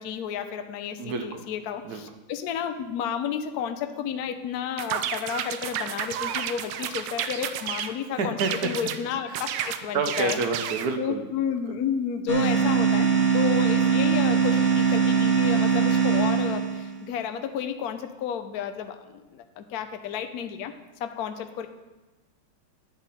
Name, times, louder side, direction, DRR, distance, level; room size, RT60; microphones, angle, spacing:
voice 1, 0.0-0.9 1.2-1.8 2.4-6.6 6.9-8.4 8.6-9.3 9.8-10.4 11.0-13.1 13.3-14.5 14.9-16.6 17.1-18.7 19.7-20.7 21.2-21.3, left 8 dB, 75° left, 7 dB, 0.9 m, -31 dB
voice 2, 1.0-1.4 1.8-2.0 8.2-8.7 9.3-9.6 9.9-11.2, right 4 dB, 60° right, 5 dB, 1.1 m, -28 dB
sound 1, 4.8-7.9 8.4-9.0 9.3-10.9, right 9 dB, 75° right, 1.4 m, -31 dB
sound 2, 12.3-17.0, right 6 dB, 40° left, 1.3 m, -22 dB
11.0 x 7.9 x 4.2 m, 1.1 s
omnidirectional pair, 2.4 m